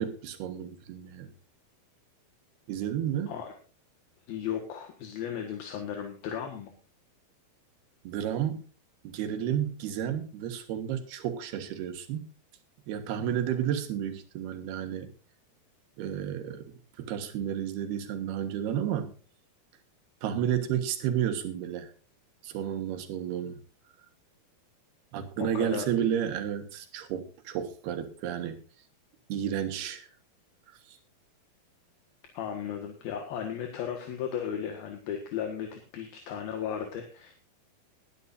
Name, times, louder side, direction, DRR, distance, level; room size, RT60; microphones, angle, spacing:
voice 1, 0.0-1.3 2.7-3.4 8.1-8.6 9.0-12.3 12.9-15.1 16.0-16.7 17.0-19.1 20.2-21.9 22.4-23.6 25.1-28.6 29.3-30.1 30.9-31.0, right 9 dB, 85° right, 8 dB, 3.5 m, -31 dB
voice 2, 4.3-6.7 25.4-26.1 32.3-37.4, left 8 dB, 75° left, 4 dB, 3.3 m, -35 dB
20.5 x 10.5 x 2.6 m, 0.37 s
omnidirectional pair, 4.4 m